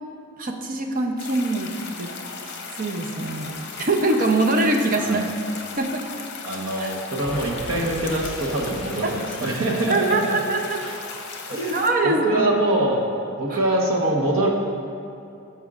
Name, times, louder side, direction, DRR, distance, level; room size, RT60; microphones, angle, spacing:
voice 1, 0.4-2.1 2.8-3.5 3.8-5.2 5.8-6.0 6.8-6.9 9.9-10.8 11.5-12.4 13.5-13.6, right 2 dB, 40° right, 2 dB, 0.6 m, -23 dB
sound 1, 1.2-11.9, left 4 dB, 55° left, 0.8 m, -37 dB
voice 2, 6.4-10.4 11.5-13.0 13.4-14.5, right 1 dB, 75° right, -1 dB, 1.2 m, -24 dB
Explosion, 7.2-12.0, equal, 5° left, 1.8 m, -40 dB
14.5 x 5.4 x 2.4 m, 2.7 s
head